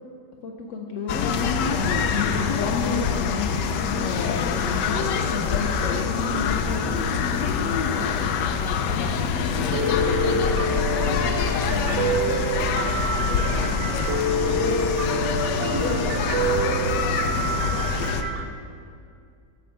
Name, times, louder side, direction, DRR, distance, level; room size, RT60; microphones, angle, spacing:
voice 1, 0.4-5.0 5.3-7.3 7.5-9.0 10.2-11.0 11.3-12.6 13.3-14.2, left 4 dB, 70° left, 2 dB, 0.7 m, -34 dB
sound 1, 1.1-18.2, left 6 dB, 90° left, 1.2 m, -25 dB
Piano, 9.7-18.4, right 2 dB, 70° right, 0.7 m, -27 dB
voice 2, 10.3-11.1 13.6-14.1 15.0-16.1 17.3-17.6, right 2 dB, 90° right, -3 dB, 2.2 m, -37 dB
8.5 x 4.6 x 6.0 m, 2.4 s
omnidirectional pair, 1.8 m